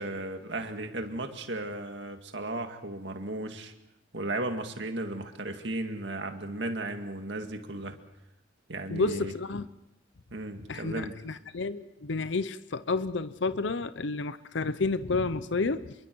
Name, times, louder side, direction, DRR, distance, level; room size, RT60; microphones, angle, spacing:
voice 1, 0.0-3.7 4.1-8.0 8.7-9.3 10.3-11.2, right 2 dB, 65° right, 2.1 m, -35 dB
voice 2, 8.9-9.7 10.7-15.9, left 3 dB, 75° left, 0.7 m, -30 dB
27.0 x 23.0 x 4.6 m
head